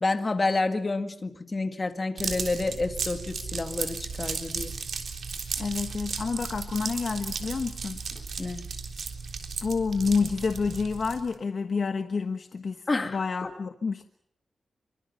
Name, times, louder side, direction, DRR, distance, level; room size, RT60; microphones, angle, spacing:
voice 1, 0.0-4.7 8.4-8.6 12.9-13.5, left 3 dB, 25° left, 7 dB, 2.0 m, -29 dB
sound 1, 2.2-11.3, right 5 dB, 70° right, 3.6 m, -35 dB
voice 2, 5.6-8.0 9.6-14.1, left 5 dB, 50° left, 7 dB, 1.2 m, -29 dB
27.0 x 24.5 x 5.6 m, 0.73 s
wide cardioid pair, 165°, 0 cm